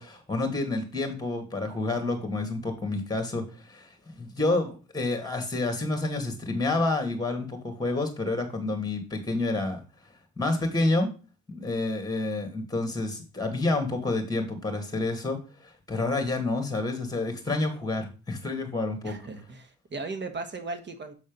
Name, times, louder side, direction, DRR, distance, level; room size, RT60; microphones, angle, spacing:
voice 1, 0.0-9.8 10.4-11.1 11.5-19.2, left 2 dB, 15° left, 5 dB, 2.3 m, -29 dB
voice 2, 19.0-21.1, right 3 dB, 35° right, 9 dB, 1.3 m, -37 dB
7.3 x 4.2 x 5.3 m, 0.34 s
cardioid pair, 90°, 30 cm